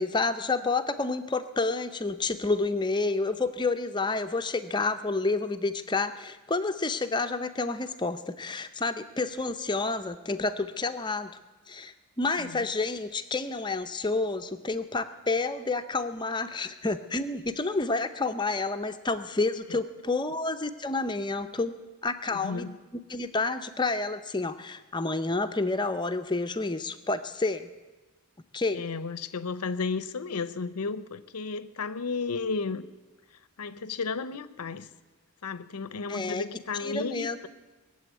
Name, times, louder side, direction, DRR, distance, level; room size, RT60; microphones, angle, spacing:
voice 1, 0.0-11.3 11.7-22.7 22.9-27.7 28.5-28.9 36.1-36.4 36.8-37.4, left 3 dB, 20° left, 9 dB, 0.6 m, -29 dB
voice 2, 22.3-22.8 28.7-32.8 33.6-34.9 35.4-37.5, left 4 dB, 90° left, 15 dB, 0.7 m, -33 dB
19.5 x 7.7 x 9.4 m, 1.2 s
head